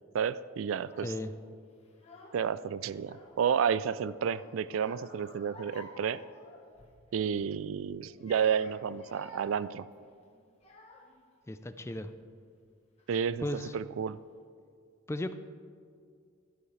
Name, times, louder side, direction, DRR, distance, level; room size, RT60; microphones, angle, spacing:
voice 1, 0.1-1.1 2.3-6.2 7.1-9.9 13.1-13.5 13.7-14.2, right 7 dB, 70° right, 17 dB, 0.3 m, -31 dB
Child speech kid speaking / Crying sobbing, 0.7-1.2 1.9-2.5 2.9-3.7 4.1-7.0 7.3-7.6 8.1-11.2 11.8-12.2 13.0-13.1 13.3-14.0, left 2 dB, 30° left, 1.5 m, -53 dB
voice 2, 11.5-12.1 13.4-13.7 15.1-15.3, left 1 dB, 15° left, 10 dB, 0.4 m, -35 dB
12.5 x 10.5 x 3.3 m, 2.2 s
head